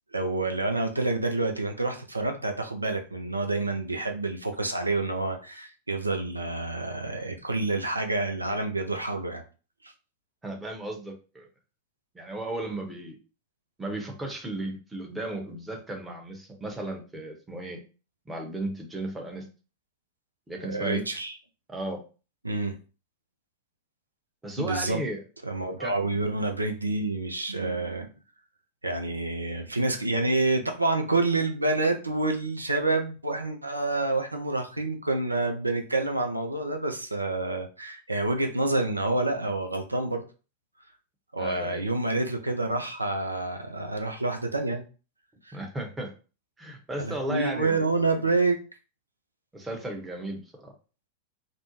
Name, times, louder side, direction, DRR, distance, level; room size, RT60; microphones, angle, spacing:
voice 1, 0.1-9.4 9.8-9.9 20.7-21.4 22.4-22.8 24.6-25.0 25.4-28.1 28.8-40.2 41.3-44.8 45.4-45.6 47.0-48.6, right 2 dB, 85° right, 5 dB, 0.4 m, -28 dB
voice 2, 10.4-11.5 12.1-13.2 13.8-17.8 18.3-19.5 20.5-21.2 21.7-22.0 24.4-25.2 25.8-25.9 41.4-41.8 45.5-46.1 46.6-47.8 49.5-50.7, right 1 dB, 10° right, 1 dB, 0.7 m, -35 dB
2.5 x 2.0 x 2.9 m, 0.34 s
figure-of-eight pair, 90°, 0 cm